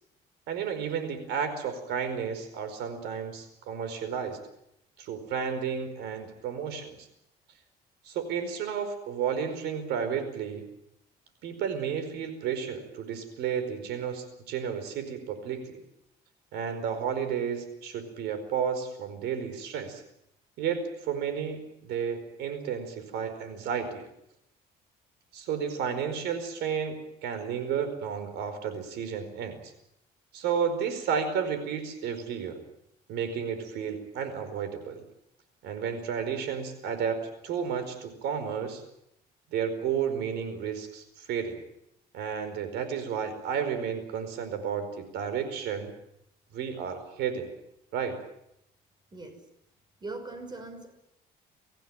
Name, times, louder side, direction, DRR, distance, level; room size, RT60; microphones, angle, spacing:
voice 1, 0.5-4.4 5.0-7.1 8.1-10.6 11.4-15.8 16.5-20.0 20.6-24.0 25.3-29.7 30.3-32.6 33.1-35.0 35.6-38.8 39.5-41.6 42.1-45.9 46.5-47.5 47.9-48.2, right 7 dB, 80° right, 10 dB, 4.8 m, -32 dB
voice 2, 49.1-49.4 50.0-51.0, right 3 dB, 25° right, 9 dB, 5.8 m, -40 dB
25.0 x 16.0 x 9.2 m, 0.79 s
cardioid pair, 110°, 17 cm